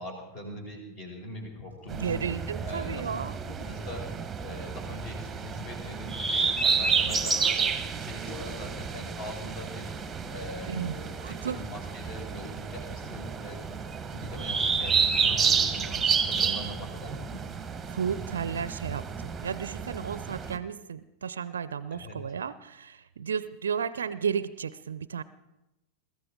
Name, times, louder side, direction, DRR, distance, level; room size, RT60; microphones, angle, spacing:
voice 1, 0.0-2.2 2.6-3.2 3.6-9.9 10.3-13.6 14.1-17.5 21.9-22.2, left 1 dB, 40° left, 2 dB, 4.9 m, -42 dB
sound 1, 1.7-13.9 14.2-15.8, left 1 dB, 75° left, 7.3 m, -52 dB
sound 2, 1.9-20.6, right 5 dB, 15° right, 1.1 m, -30 dB
voice 2, 2.0-3.4 10.7-10.9 11.2-11.6 17.9-25.2, right 7 dB, 65° right, 17 dB, 0.5 m, -33 dB
22.0 x 14.0 x 3.7 m, 0.92 s
figure-of-eight pair, 90°, 0 cm